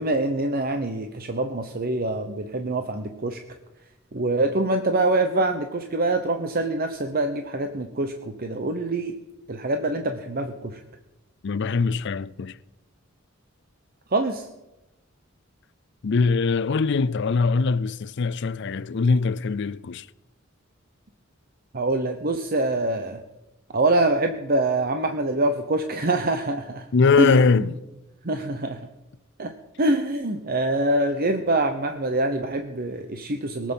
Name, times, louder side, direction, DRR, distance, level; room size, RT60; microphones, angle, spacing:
voice 1, 0.0-3.4 4.1-9.1 9.5-10.8 14.1-14.5 21.7-23.2 23.7-26.9 27.2-27.7 28.2-28.8 29.4-29.5 29.8-33.7, right 2 dB, 45° right, 0.9 m, -25 dB
voice 2, 11.4-12.6 16.0-20.1 26.9-27.8, left 4 dB, 60° left, 0.5 m, -22 dB
22.5 x 7.6 x 5.6 m
head